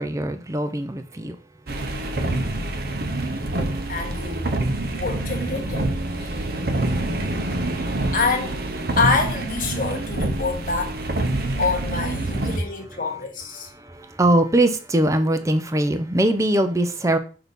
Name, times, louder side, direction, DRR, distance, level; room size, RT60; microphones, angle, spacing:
voice 1, 0.0-1.4 1.7-1.8 3.1-3.4 3.7-3.9 12.5-13.0 13.6-17.2, right 1 dB, 15° right, 0.5 m, -22 dB
sound 1, 1.7-12.6, right 2 dB, 55° right, 0.8 m, -26 dB
voice 2, 3.9-4.5 4.9-6.5 8.1-8.5 9.0-11.0 11.6-13.7, left 4 dB, 50° left, 1.4 m, -26 dB
6.2 x 2.8 x 5.3 m
head